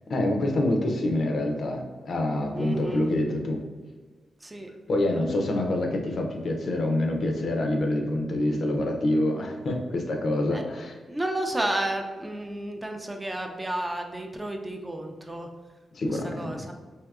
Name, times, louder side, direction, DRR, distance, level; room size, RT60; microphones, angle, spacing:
voice 1, 0.1-3.6 4.9-11.0 15.9-16.6, left 1 dB, 65° left, 3 dB, 0.4 m, -26 dB
voice 2, 2.5-3.1 4.4-4.7 10.5-10.6 11.1-15.5 16.0-16.7, right 1 dB, 20° right, 3 dB, 0.4 m, -32 dB
3.5 x 2.7 x 2.3 m, 1.4 s
cardioid pair, 70°, 0 cm